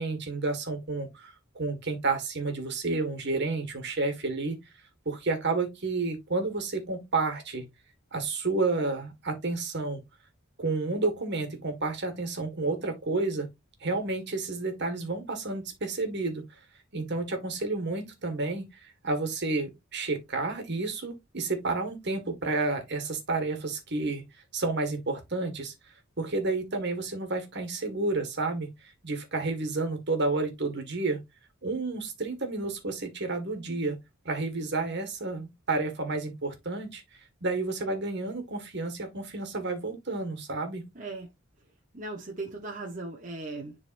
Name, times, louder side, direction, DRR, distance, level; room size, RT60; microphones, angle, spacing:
voice 1, 0.0-4.6 5.1-7.7 8.1-10.0 10.6-13.5 13.8-16.4 16.9-24.2 24.5-25.7 26.2-28.7 29.0-31.2 31.6-34.0 34.3-37.0 37.4-40.8, right 3 dB, 55° right, 1.9 m, -30 dB
voice 2, 40.9-41.3 41.9-43.8, right 2 dB, 35° right, 1.2 m, -38 dB
10.5 x 4.0 x 2.6 m
head